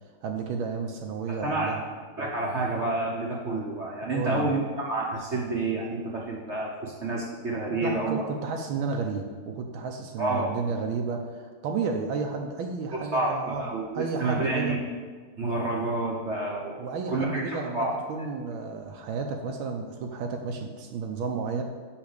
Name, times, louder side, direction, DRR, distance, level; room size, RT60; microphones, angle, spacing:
voice 1, 0.2-1.8 4.0-4.5 7.8-14.8 16.8-21.6, right 5 dB, 75° right, 3 dB, 1.4 m, -32 dB
voice 2, 1.3-1.7 2.2-8.2 10.2-10.5 12.9-14.8 15.4-18.3, right 2 dB, 50° right, -3 dB, 0.9 m, -29 dB
6.0 x 5.6 x 6.5 m, 1.5 s
omnidirectional pair, 2.3 m